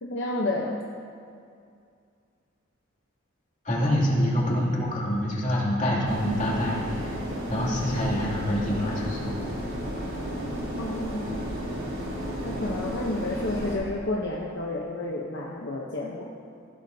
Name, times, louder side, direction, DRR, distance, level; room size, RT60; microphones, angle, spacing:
voice 1, 0.0-0.8 10.8-11.6 12.4-16.3, left 2 dB, 60° left, -3 dB, 0.9 m, -31 dB
voice 2, 3.6-7.2 7.5-9.3, equal, 35° left, -6 dB, 2.6 m, -26 dB
sound 1, 6.1-13.8, equal, 75° right, 3.2 m, -33 dB
15.5 x 11.5 x 2.8 m, 2.4 s
head